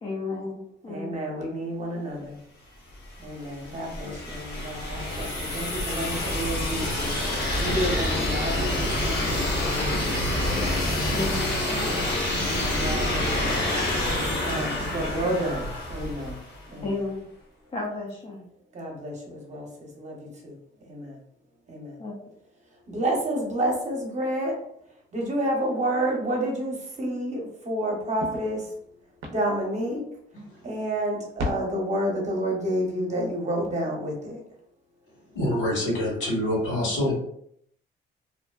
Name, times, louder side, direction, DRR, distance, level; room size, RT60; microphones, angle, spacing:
voice 1, 0.0-1.2 6.2-6.3 11.1-11.5 16.8-17.2 17.7-18.4 22.0-22.1, left 3 dB, 30° left, -3 dB, 0.5 m, -32 dB
voice 2, 0.9-2.4 3.2-7.2 7.6-10.2 11.7-13.6 14.4-15.6 15.9-16.4 16.7-17.0 18.7-19.7 20.0-20.5 20.9-21.1 21.7-21.9 22.9-24.6 25.1-28.6 29.3-30.0 30.6-34.4, right 1 dB, 35° right, -1 dB, 0.8 m, -30 dB
sound 1, 3.0-16.7, left 1 dB, 55° left, 0.9 m, -27 dB
sound 2, 6.1-9.8 10.1-14.4, left 1 dB, 85° left, 0.9 m, -44 dB
sound 3, 25.8-26.0 26.3-26.4 28.2-30.4 30.8-30.9 31.2-31.5, left 1 dB, 80° right, 0.5 m, -36 dB
voice 3, 35.3-37.2, left 1 dB, 70° left, -4 dB, 1.4 m, -25 dB
2.6 x 2.1 x 2.3 m, 0.71 s
cardioid pair, 90°, 20 cm